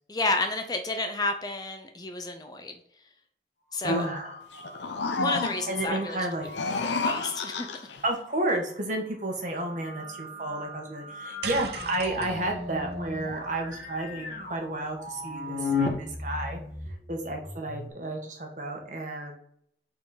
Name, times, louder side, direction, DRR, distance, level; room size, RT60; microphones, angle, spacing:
voice 1, 0.1-2.7 3.7-4.1 5.1-6.3 6.8-7.7, left 2 dB, 20° left, 6 dB, 0.6 m, -31 dB
sound 1, 3.7-7.9 9.5-17.9, left 2 dB, 45° left, 1.4 m, -37 dB
voice 2, 3.8-4.4 5.7-6.5 8.0-15.7 16.0-16.6 17.1-19.4, right 1 dB, 45° right, 1 dB, 1.4 m, -31 dB
sound 2, 4.5-5.9 6.4-8.0, left 3 dB, 80° left, 0.7 m, -31 dB
sound 3, 11.4-15.8, right 5 dB, 65° right, 0.7 m, -42 dB
5.5 x 4.4 x 4.9 m, 0.67 s
head